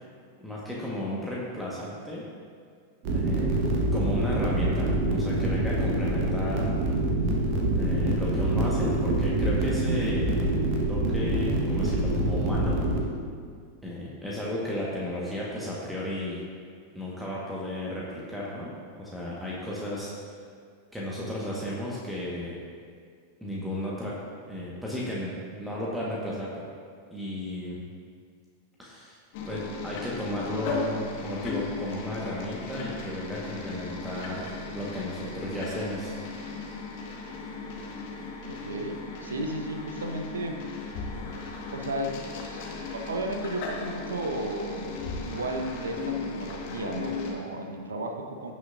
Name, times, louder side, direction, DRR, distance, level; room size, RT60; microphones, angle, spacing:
voice 1, 0.4-2.2 3.1-3.6 3.9-6.7 7.7-10.3 10.9-12.8 13.8-16.4 16.9-20.1 20.9-22.6 23.4-24.2 24.5-26.6 27.1-27.8 28.8-29.2 29.4-36.2, left 1 dB, ahead, -6 dB, 1.5 m, -34 dB
sound 1, 3.0-13.0, right 1 dB, 45° right, 1.4 m, -26 dB
sound 2, 29.3-47.3, left 4 dB, 50° left, 1.7 m, -36 dB
voice 2, 38.5-40.6 41.7-42.2 42.5-42.7 42.9-45.0 45.3-48.5, right 2 dB, 70° right, 4 dB, 0.9 m, -34 dB
16.5 x 6.4 x 2.6 m, 2.1 s
figure-of-eight pair, 90°, 0 cm